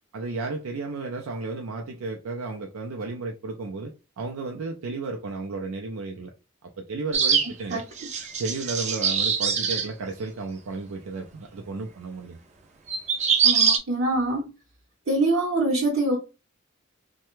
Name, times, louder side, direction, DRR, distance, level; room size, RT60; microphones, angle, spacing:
voice 1, 0.1-6.3 6.6-7.8 8.4-12.4, right 3 dB, 90° right, 0.5 m, -33 dB
sound 1, 7.1-9.9 12.9-13.8, right 6 dB, 30° right, 0.4 m, -23 dB
voice 2, 13.4-14.5 15.1-16.2, right 2 dB, 65° right, 0.8 m, -24 dB
3.2 x 2.2 x 3.0 m
head